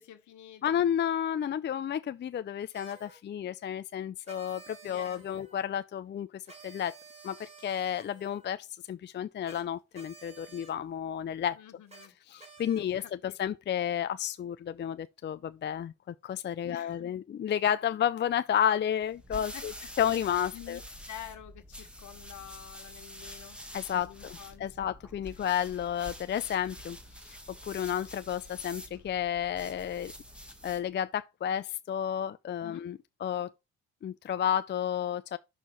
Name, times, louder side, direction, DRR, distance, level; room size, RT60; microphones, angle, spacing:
voice 1, 0.0-0.8 4.8-5.5 11.5-12.2 12.7-13.5 16.6-17.2 19.3-20.8 21.1-23.6 23.9-24.9 25.2-25.3 32.6-32.8, left 11 dB, 75° left, 1.5 m, -49 dB
voice 2, 0.6-6.9 7.2-11.6 12.3-19.7 20.0-20.8 23.7-27.0 27.3-27.4 27.6-30.1 30.6-33.5 34.0-35.4, left 9 dB, 35° left, 0.5 m, -31 dB
sound 1, 2.7-3.2 4.2-5.7 6.5-8.5 9.4-9.6 9.9-10.7 11.9-12.1 12.4-13.0, right 3 dB, 20° right, 3.1 m, -52 dB
sound 2, 19.0-30.9, equal, 5° right, 1.5 m, -47 dB
6.1 x 4.5 x 5.4 m
cardioid pair, 90°, 30 cm